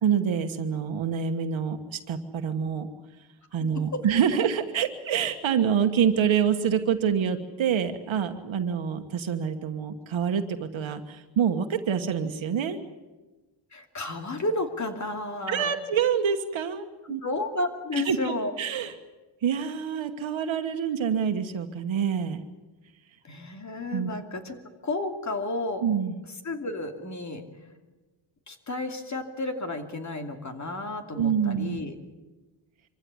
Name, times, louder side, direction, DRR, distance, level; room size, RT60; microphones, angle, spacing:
voice 1, 0.0-2.9 3.5-12.8 15.5-17.2 18.0-18.9 19.4-22.4 23.9-24.1 25.8-26.2 31.2-31.8, right 7 dB, 70° right, 6 dB, 1.5 m, -26 dB
voice 2, 13.7-15.8 17.2-18.5 23.2-24.6 24.8-25.8 26.4-27.4 28.5-31.9, left 2 dB, 35° left, 6 dB, 2.8 m, -32 dB
25.0 x 15.5 x 9.8 m, 1.2 s
cardioid pair, 105°, 48 cm